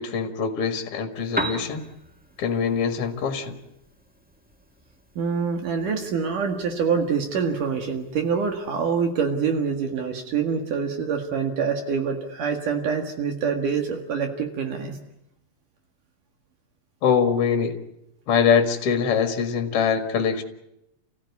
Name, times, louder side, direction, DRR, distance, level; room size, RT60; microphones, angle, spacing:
voice 1, 0.0-1.9 2.4-3.6 17.0-17.8 18.3-20.4, left 6 dB, 45° left, 6 dB, 2.4 m, -23 dB
Piano, 1.1-9.1, right 1 dB, 10° right, 0.6 m, -39 dB
voice 2, 5.2-15.0, right 6 dB, 65° right, 5 dB, 3.3 m, -25 dB
29.0 x 16.0 x 9.6 m, 0.87 s
omnidirectional pair, 4.1 m